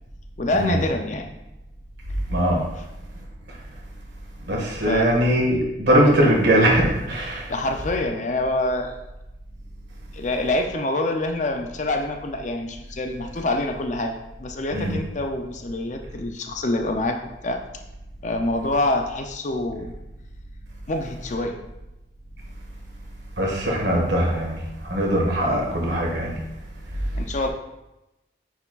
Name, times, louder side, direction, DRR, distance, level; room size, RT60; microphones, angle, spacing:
voice 1, 0.4-1.3 2.8-2.9 4.8-5.1 7.5-9.0 10.1-14.1 14.4-17.2 17.4-17.6 18.2-19.9 20.9-21.6 27.1-27.5, left 2 dB, 40° left, 4 dB, 0.5 m, -26 dB
voice 2, 2.3-2.6 4.5-7.5 14.7-14.9 23.4-26.4, right 1 dB, 65° right, -2 dB, 1.6 m, -21 dB
9.2 x 4.5 x 2.4 m, 0.96 s
head